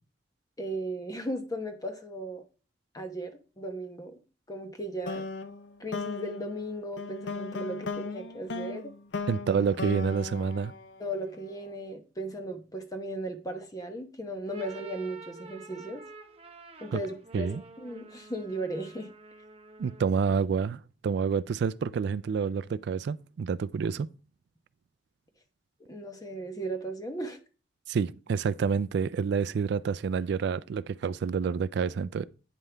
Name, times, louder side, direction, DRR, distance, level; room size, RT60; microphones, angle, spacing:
voice 1, 0.6-2.4 2.9-4.1 4.5-5.3 5.8-8.9 11.0-16.0 16.8-19.1 25.9-27.4, right 1 dB, 20° left, 1.0 m, -36 dB
sound 1, 5.1-11.5, left 3 dB, 70° left, 0.6 m, -37 dB
voice 2, 9.3-10.7 16.9-17.0 17.3-17.6 19.8-24.1 27.9-32.2, right 6 dB, 65° right, 0.3 m, -28 dB
sound 2, 14.3-20.3, right 3 dB, 35° right, 0.9 m, -49 dB
9.2 x 5.5 x 3.3 m
head